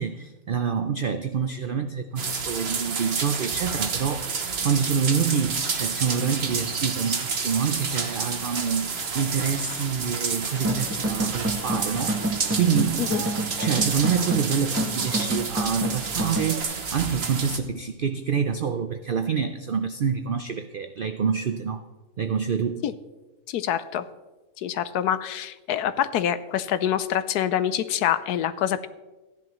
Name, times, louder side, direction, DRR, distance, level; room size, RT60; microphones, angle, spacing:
voice 1, 0.0-4.3 4.6-13.1 13.6-21.8 22.2-22.8, right 6 dB, 80° right, 8 dB, 0.4 m, -27 dB
sound 1, 2.2-17.6, right 5 dB, 45° right, 1.1 m, -30 dB
sound 2, 10.4-16.6, right 1 dB, 15° right, 0.6 m, -29 dB
voice 2, 23.5-24.0 24.6-28.9, left 10 dB, 85° left, 12 dB, 1.2 m, -26 dB
15.0 x 10.5 x 3.1 m, 1.1 s
omnidirectional pair, 1.6 m